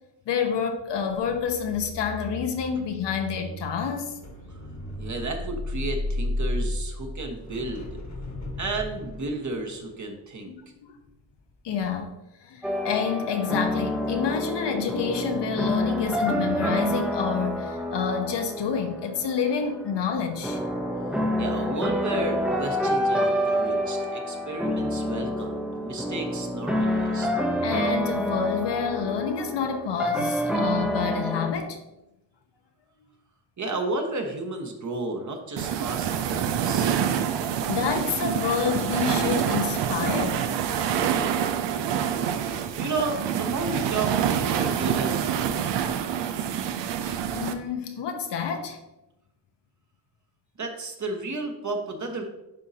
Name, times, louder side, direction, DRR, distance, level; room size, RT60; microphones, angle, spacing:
voice 1, 0.3-4.1 10.5-11.0 11.6-12.1 12.4-20.6 27.6-31.8 37.7-40.5 42.5-42.7 47.3-48.8, left 6 dB, 75° left, 5 dB, 1.0 m, -28 dB
sound 1, 1.2-11.4 11.8-12.0, left 1 dB, 40° left, 1.4 m, -34 dB
voice 2, 5.0-8.0 8.6-10.5 21.4-27.3 33.6-37.0 42.8-46.2 50.6-52.2, right 2 dB, 45° right, 3 dB, 1.3 m, -32 dB
sound 2, 12.6-31.5, equal, ahead, 0.8 m, -28 dB
sound 3, 35.6-47.5, right 8 dB, 80° right, 0.7 m, -26 dB
10.5 x 3.9 x 2.8 m, 0.95 s
cardioid pair, 75°, 42 cm